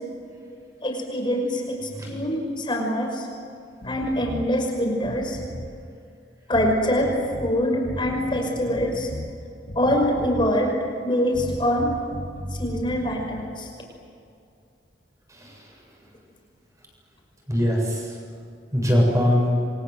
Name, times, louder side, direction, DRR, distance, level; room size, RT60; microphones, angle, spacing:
voice 1, 0.8-3.3 3.8-5.4 6.5-7.1 7.4-9.1 9.7-10.7 11.0-11.9 12.6-13.7, equal, 25° left, 1 dB, 6.0 m, -24 dB
sound 1, 3.8-4.5 5.0-5.7 6.5-7.5 7.8-9.3 9.7-10.6 11.3-13.4, equal, 85° left, 4.5 m, -35 dB
voice 2, 17.5-18.2 18.7-19.6, equal, 20° right, -1 dB, 7.6 m, -22 dB
29.0 x 24.0 x 8.1 m, 2.4 s
head